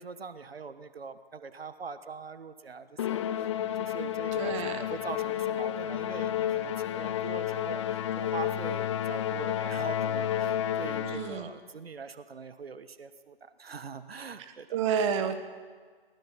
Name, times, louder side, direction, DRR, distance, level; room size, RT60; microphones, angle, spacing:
voice 1, 0.0-3.5 3.8-14.8, right 5 dB, 80° right, 11 dB, 1.3 m, -43 dB
Musical instrument, 3.0-11.5, left 10 dB, 30° left, 0.6 m, -31 dB
voice 2, 4.3-4.8 11.0-11.5 14.7-15.4, right 7 dB, 30° right, 8 dB, 1.4 m, -29 dB
22.5 x 20.0 x 5.9 m, 1.5 s
hypercardioid pair, 140°, 30 cm